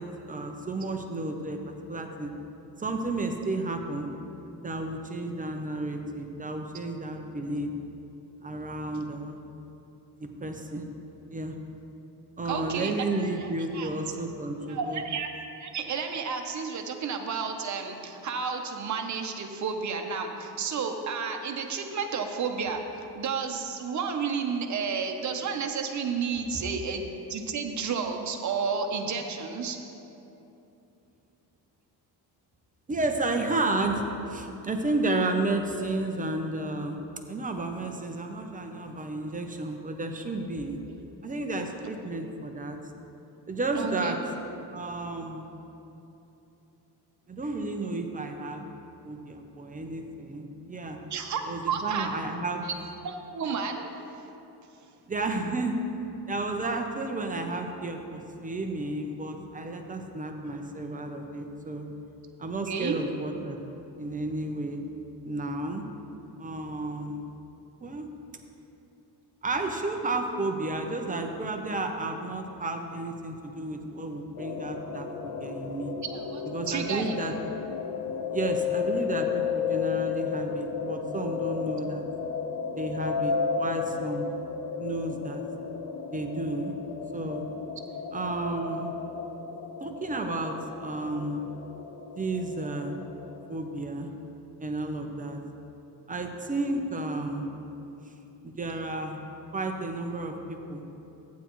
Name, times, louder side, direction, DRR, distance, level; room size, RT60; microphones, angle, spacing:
voice 1, 0.0-2.3 2.8-4.1 4.6-7.7 8.4-9.4 10.2-10.9 11.3-11.5 12.4-15.0 32.9-40.8 41.2-42.8 43.5-44.2 44.7-45.5 47.3-48.6 49.0-51.0 51.5-52.6 55.1-55.8 56.3-61.9 62.4-63.6 64.0-64.8 65.2-65.9 66.4-67.3 67.8-68.1 69.4-75.9 76.4-77.3 78.3-82.0 82.8-84.3 84.8-85.4 86.1-86.8 87.1-87.5 88.1-88.9 89.8-91.4 92.2-93.0 93.5-94.1 94.6-95.4 96.1-97.5 98.4-99.2 99.5-100.8, right 2 dB, 20° right, 4 dB, 0.6 m, -32 dB
voice 2, 12.5-13.5 13.7-13.9 14.7-15.3 15.6-29.8 43.7-44.2 51.1-52.1 52.6-52.7 53.0-54.3 62.7-63.0 76.0-77.1, right 5 dB, 45° right, 4 dB, 0.9 m, -31 dB
sound 1, 74.4-93.5, left 6 dB, 75° left, 0.8 m, -33 dB
14.5 x 9.3 x 3.1 m, 2.9 s
cardioid pair, 160°, 41 cm